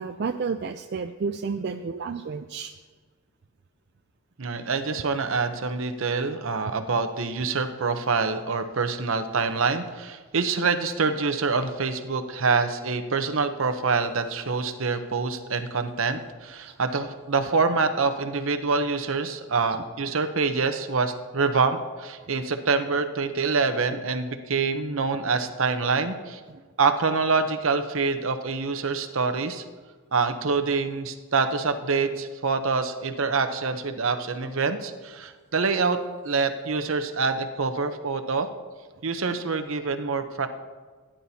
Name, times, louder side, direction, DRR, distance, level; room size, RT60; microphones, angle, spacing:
voice 1, 0.0-2.7 16.7-16.8 26.5-26.6, right 5 dB, 50° right, 7 dB, 0.3 m, -31 dB
voice 2, 4.4-26.4 26.8-29.6 30.1-38.5 39.0-40.5, right 4 dB, 65° right, 8 dB, 0.8 m, -26 dB
16.5 x 10.0 x 2.8 m, 1.4 s
head